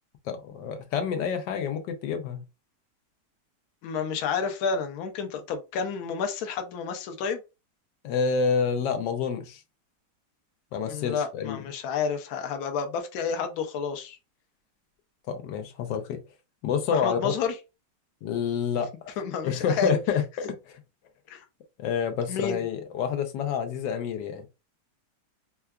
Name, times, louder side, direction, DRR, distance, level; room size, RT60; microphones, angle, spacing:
voice 1, 0.3-2.4 8.0-9.6 10.7-11.6 15.3-16.2 16.6-17.3 18.2-18.9 19.4-20.6 21.8-24.5, left 6 dB, 90° left, 1.3 m, -28 dB
voice 2, 3.8-7.4 10.8-14.2 16.9-17.6 19.2-20.0 21.3-21.4 22.3-22.7, left 5 dB, 65° left, 1.1 m, -30 dB
4.6 x 2.2 x 2.2 m
omnidirectional pair, 1.9 m